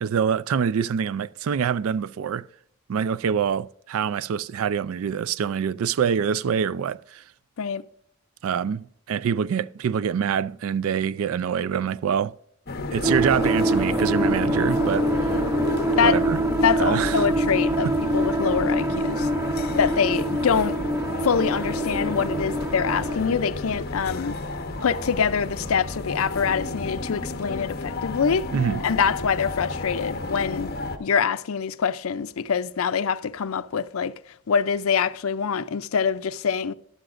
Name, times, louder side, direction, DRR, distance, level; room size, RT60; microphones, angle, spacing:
voice 1, 0.0-2.5 2.9-7.2 8.4-12.3 12.9-15.1 16.0-16.4 16.8-17.3 28.5-28.8, right 7 dB, 75° right, 0.3 m, -25 dB
sound 1, 12.7-31.0, left 2 dB, 45° left, 1.0 m, -32 dB
sound 2, 13.0-23.2, right 1 dB, 10° right, 0.5 m, -25 dB
voice 2, 16.6-19.3 19.8-20.8 21.2-24.4 24.8-28.5 28.8-30.7 31.0-34.1 34.5-36.7, left 6 dB, 75° left, 0.5 m, -24 dB
12.5 x 11.5 x 2.5 m
head